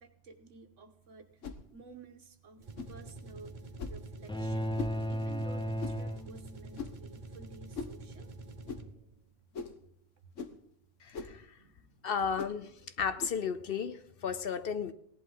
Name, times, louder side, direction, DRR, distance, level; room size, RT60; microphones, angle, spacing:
voice 1, 0.0-1.3 1.7-2.6 2.9-3.5 3.9-4.7 5.1-8.3 11.6-12.1, right 4 dB, 85° right, 7 dB, 1.6 m, -52 dB
sound 1, 1.4-1.6 2.8-3.0 3.8-4.0 4.8-5.0 5.8-6.0 6.8-7.0 7.7-8.0 8.7-8.9 9.5-9.8 10.4-10.6 11.1-11.4 12.4-12.6 13.2-13.4, left 5 dB, 90° left, 1.5 m, -40 dB
sound 2, 2.6-9.1, right 2 dB, 40° right, 1.2 m, -47 dB
sound 3, 4.3-6.8, equal, 10° left, 0.3 m, -35 dB
voice 2, 11.0-11.5 12.0-14.9, left 6 dB, 55° left, 12 dB, 0.8 m, -34 dB
17.0 x 11.0 x 3.9 m, 0.70 s
omnidirectional pair, 1.2 m